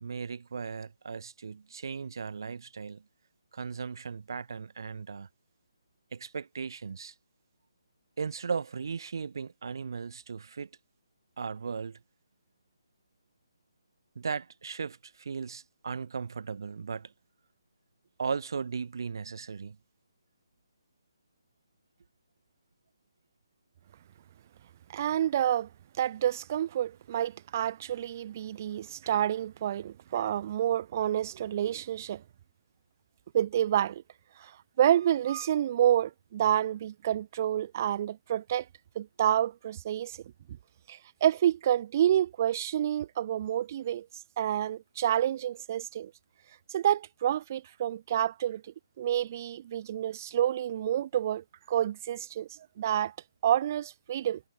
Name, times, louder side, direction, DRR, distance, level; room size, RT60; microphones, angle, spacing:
voice 1, 0.0-3.0 3.5-5.3 6.1-7.1 8.2-10.7 11.4-12.0 14.1-17.1 18.2-19.8, right 5 dB, 60° right, 1.4 m, -37 dB
voice 2, 24.9-25.7 26.0-32.2 33.3-34.0 34.4-34.5 34.8-38.7 39.0-40.2 40.9-44.1 44.4-46.1 46.7-48.6 49.0-52.5 52.8-53.1 53.4-54.4, right 11 dB, 35° right, 0.4 m, -28 dB
figure-of-eight pair, 145°, 2 cm